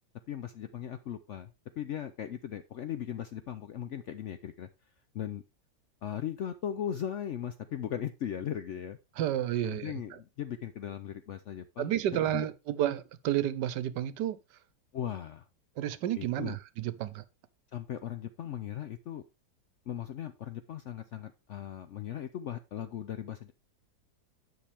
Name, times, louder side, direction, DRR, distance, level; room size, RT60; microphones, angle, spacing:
voice 1, 0.3-1.5 1.8-4.7 5.1-5.4 6.0-9.0 9.6-11.9 12.3-12.5 14.9-15.4 16.2-16.6 17.7-19.2 19.9-23.5, left 10 dB, 70° left, 0.7 m, -38 dB
voice 2, 9.2-9.9 11.8-14.4 15.8-17.2, right 12 dB, 90° right, 1.3 m, -31 dB
10.0 x 6.1 x 3.4 m
omnidirectional pair, 1.8 m